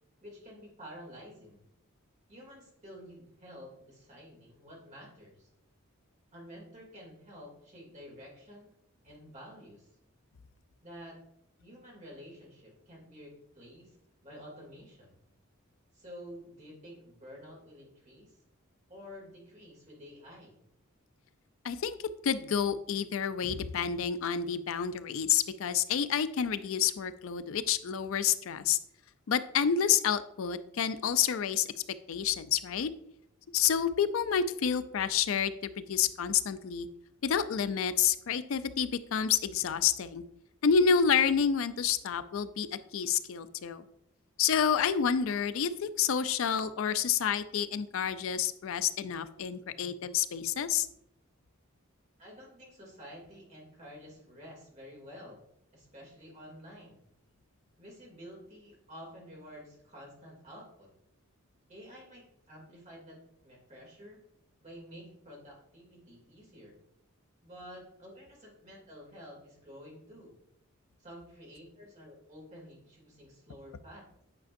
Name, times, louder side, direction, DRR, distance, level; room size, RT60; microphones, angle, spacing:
voice 1, 0.2-1.6 2.3-5.5 6.3-8.7 9.0-9.9 10.8-11.2 11.6-14.0 14.2-15.1 15.9-18.4 18.9-20.6 52.2-55.4 55.7-57.0 57.8-60.9 61.7-64.2 64.6-66.8 67.4-70.4 71.0-74.0, equal, 35° right, -2 dB, 2.5 m, -50 dB
voice 2, 21.6-22.0 22.2-28.8 29.3-31.7 32.1-32.9 33.5-36.9 37.2-40.2 40.6-43.8 44.4-50.9, left 7 dB, 70° left, 13 dB, 0.4 m, -29 dB
8.9 x 5.1 x 2.6 m, 0.74 s
head